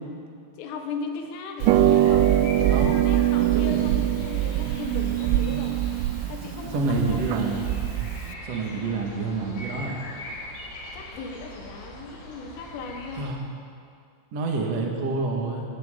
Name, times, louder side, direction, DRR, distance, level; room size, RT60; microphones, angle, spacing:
voice 1, 0.6-5.8 6.3-7.4 10.9-13.4, left 4 dB, 80° left, 3 dB, 3.9 m, -37 dB
sound 1, 1.6-13.3, left 1 dB, 60° left, 3.7 m, -42 dB
Harp, 1.6-8.3, right 12 dB, 85° right, 3.1 m, -23 dB
voice 2, 3.4-4.1 6.7-7.7 8.4-10.0 13.2-13.4 14.3-15.6, right 3 dB, 60° right, 0 dB, 1.7 m, -28 dB
18.0 x 16.5 x 3.9 m, 2.3 s
omnidirectional pair, 5.8 m